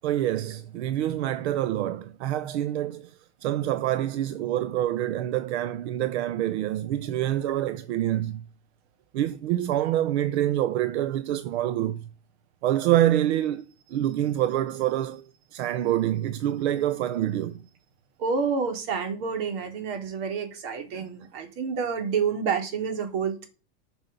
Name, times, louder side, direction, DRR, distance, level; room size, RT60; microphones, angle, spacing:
voice 1, 0.0-8.4 9.1-12.1 12.6-17.7 20.9-21.1, right 12 dB, 85° right, 0.8 m, -26 dB
voice 2, 18.2-23.5, right 6 dB, 60° right, 3.4 m, -28 dB
11.0 x 6.2 x 6.8 m
supercardioid pair, 145°, 32 cm